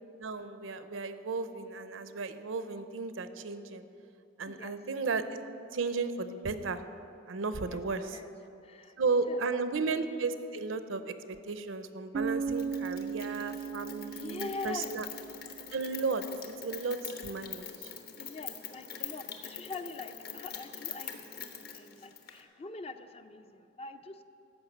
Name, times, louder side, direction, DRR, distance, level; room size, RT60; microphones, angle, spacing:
voice 1, 0.2-3.8 4.4-5.2 5.7-6.8 7.3-8.2 9.0-15.1 15.7-16.2 16.6-17.9, right 4 dB, 80° right, 11 dB, 0.6 m, -34 dB
voice 2, 4.4-4.8 7.6-8.3 8.6-9.0 9.3-9.8 14.0-15.0 18.2-24.2, left 3 dB, 30° left, 9 dB, 0.5 m, -44 dB
Bass guitar, 12.1-16.0, right 5 dB, 45° right, 0.3 m, -37 dB
Rain, 12.5-22.4, left 7 dB, 50° left, 1.0 m, -44 dB
13.5 x 5.7 x 7.9 m, 2.7 s
head